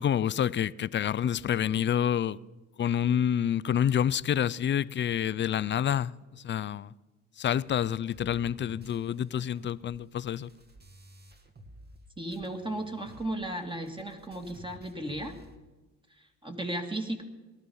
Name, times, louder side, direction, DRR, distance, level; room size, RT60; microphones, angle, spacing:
voice 1, 0.0-2.4 2.8-6.9 7.4-10.5, left 9 dB, 40° left, 0.4 m, -28 dB
sound 1, 7.6-12.0 12.3-15.6, right 1 dB, 35° right, 1.8 m, -53 dB
voice 2, 12.2-15.3 16.2-17.2, right 1 dB, 15° right, 2.2 m, -35 dB
18.5 x 13.0 x 5.6 m
cardioid pair, 90°, 30 cm